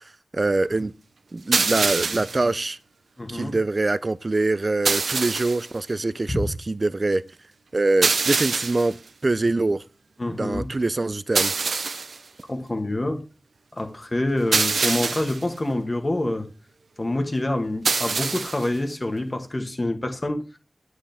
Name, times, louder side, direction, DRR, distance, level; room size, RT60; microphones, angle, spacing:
voice 1, 0.3-0.9 1.3-2.8 3.3-7.2 7.7-8.9 9.2-9.8 10.3-11.5, right 2 dB, 40° right, 0.5 m, -24 dB
sound 1, 1.5-2.4 4.9-5.7 8.0-8.9 11.4-12.2 14.5-15.4 17.9-18.7, right 4 dB, 85° right, 0.7 m, -24 dB
voice 2, 3.2-3.6 6.3-6.5 10.2-10.7 12.5-13.2 13.7-16.5 17.0-20.4, left 1 dB, 30° left, 1.5 m, -26 dB
10.0 x 7.9 x 3.5 m
wide cardioid pair, 75°, 0 cm